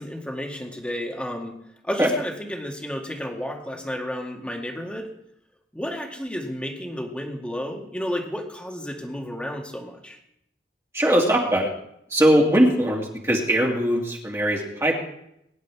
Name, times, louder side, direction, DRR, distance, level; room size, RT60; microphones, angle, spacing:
voice 1, 0.0-1.6 1.8-5.1 5.7-10.2, equal, 5° left, 1 dB, 1.9 m, -32 dB
voice 2, 10.9-11.7 12.1-15.0, equal, 15° right, -2 dB, 2.2 m, -20 dB
22.0 x 10.5 x 3.5 m, 0.77 s
head